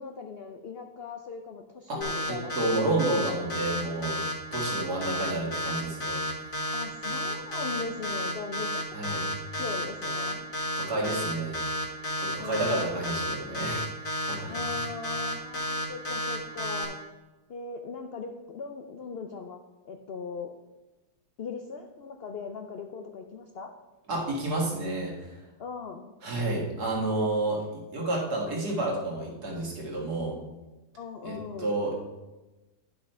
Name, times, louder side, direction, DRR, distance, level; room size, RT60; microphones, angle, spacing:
voice 1, 0.0-2.8 6.7-10.5 12.4-13.0 14.5-17.0 17.5-20.5 21.4-23.7 25.6-26.1 30.9-31.8, left 5 dB, 80° left, 5 dB, 0.5 m, -39 dB
sound 1, 2.0-16.8, left 1 dB, 30° left, 1.9 m, -31 dB
voice 2, 2.3-6.2 8.9-9.2 10.8-11.6 12.2-14.6 24.1-25.3 26.2-30.4 31.2-31.9, right 2 dB, 70° right, -2 dB, 2.3 m, -30 dB
10.5 x 5.9 x 4.3 m, 1.1 s
omnidirectional pair, 1.8 m